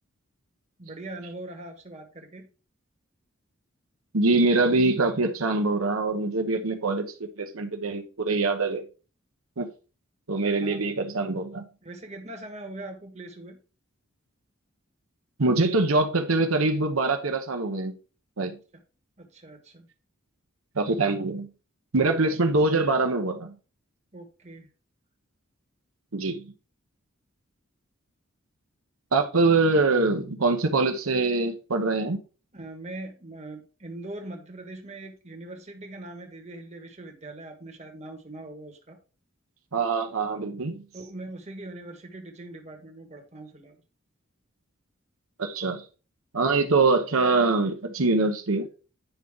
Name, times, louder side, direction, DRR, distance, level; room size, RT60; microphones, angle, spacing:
voice 1, 0.8-2.5 10.6-10.8 11.8-13.6 18.7-18.8 19.2-19.9 24.1-24.7 32.5-39.0 40.9-43.8, right 2 dB, 35° right, 1.4 m, -41 dB
voice 2, 4.1-8.8 9.6-9.7 10.3-11.6 15.4-18.0 18.4-18.6 20.7-21.5 21.9-23.5 26.1-26.5 29.1-32.2 39.7-40.8 45.4-45.8 46.3-48.7, right 3 dB, 90° right, 1.0 m, -24 dB
9.3 x 5.5 x 3.6 m
head